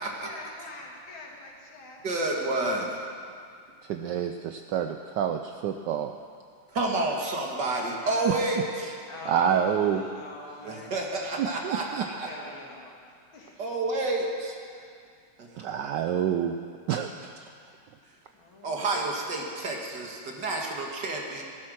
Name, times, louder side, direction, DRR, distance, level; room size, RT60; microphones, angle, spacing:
voice 1, 0.2-2.0 7.2-7.7 8.0-10.9 11.7-12.9 13.3-13.5 18.3-19.1, left 3 dB, 70° left, -2 dB, 2.8 m, -43 dB
voice 2, 2.0-3.0 6.7-8.9 10.6-12.5 13.6-14.6 15.4-15.5 18.6-21.4, right 2 dB, 55° right, 0 dB, 2.2 m, -30 dB
voice 3, 3.8-6.1 8.3-8.4 9.2-10.0 11.4-12.0 15.6-16.6 16.9-17.3, right 8 dB, 75° right, 6 dB, 1.0 m, -28 dB
14.5 x 12.0 x 6.2 m, 2.2 s
omnidirectional pair, 2.3 m